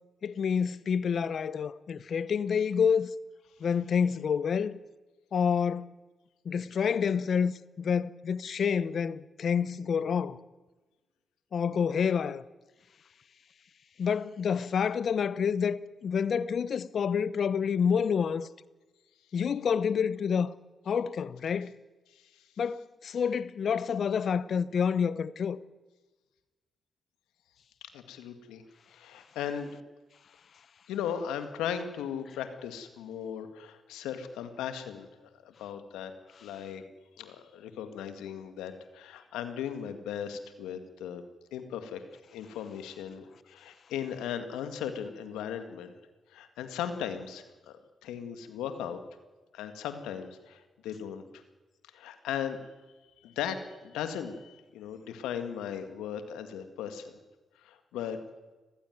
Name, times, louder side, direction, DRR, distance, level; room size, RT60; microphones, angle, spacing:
voice 1, 0.2-3.1 3.6-4.8 5.3-5.9 6.4-10.4 11.5-12.4 14.0-18.5 19.3-20.5 20.9-21.7 22.6-25.6, left 7 dB, 65° left, 0.9 m, -28 dB
voice 2, 22.1-22.4 27.9-28.6 28.9-29.8 30.9-36.1 36.4-36.8 37.2-41.2 41.5-42.0 42.3-45.9 46.3-49.0 49.5-51.4 51.9-52.6 53.2-57.1 57.6-58.2, left 8 dB, 90° left, 1.9 m, -37 dB
21.5 x 15.5 x 9.3 m
supercardioid pair, 50°, 0 cm